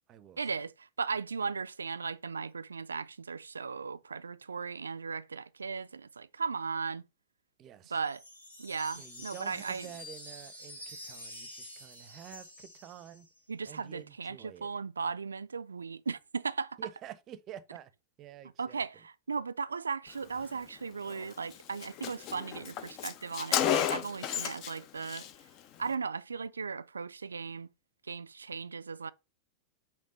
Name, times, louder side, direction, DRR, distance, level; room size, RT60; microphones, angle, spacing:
voice 1, 0.4-7.0 7.9-8.2 8.6-9.9 13.5-16.8 18.4-25.3 25.8-27.7 28.1-29.1, right 5 dB, 75° right, 0.3 m, -37 dB
voice 2, 7.6-8.0 9.0-13.3 13.7-14.7 16.8-17.9 18.2-18.8, right 11 dB, 35° right, 0.6 m, -49 dB
sound 1, 8.0-13.4, left 1 dB, 85° left, 2.1 m, -48 dB
Car, 21.1-21.2 21.5-21.6 21.8-24.8 25.0-25.3, left 10 dB, 40° left, 0.6 m, -32 dB
5.2 x 3.5 x 5.3 m
figure-of-eight pair, 90°, 0 cm